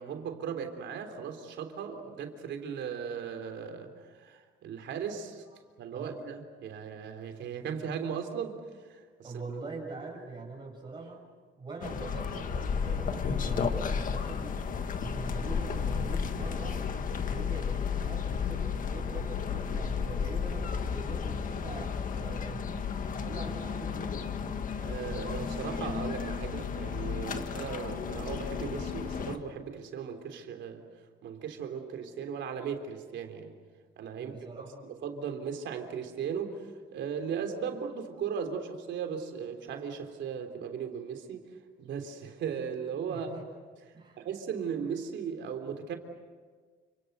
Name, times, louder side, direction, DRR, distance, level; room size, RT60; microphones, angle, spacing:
voice 1, 0.0-3.9 4.2-5.5 5.8-8.6 8.9-9.3 24.8-30.8 31.2-33.5 34.0-34.3 34.8-36.6 36.9-41.5 41.8-43.3 44.2-46.0, right 7 dB, 65° right, 5 dB, 3.4 m, -37 dB
voice 2, 9.2-11.3 11.6-14.7 15.0-16.8 17.3-22.9 23.2-24.3 34.1-34.8 43.1-43.5 43.9-44.2, right 3 dB, 25° right, -1 dB, 6.9 m, -43 dB
sound 1, 11.8-29.4, left 6 dB, 40° left, 1.6 m, -33 dB
29.5 x 27.0 x 6.8 m, 1.5 s
cardioid pair, 150°, 20 cm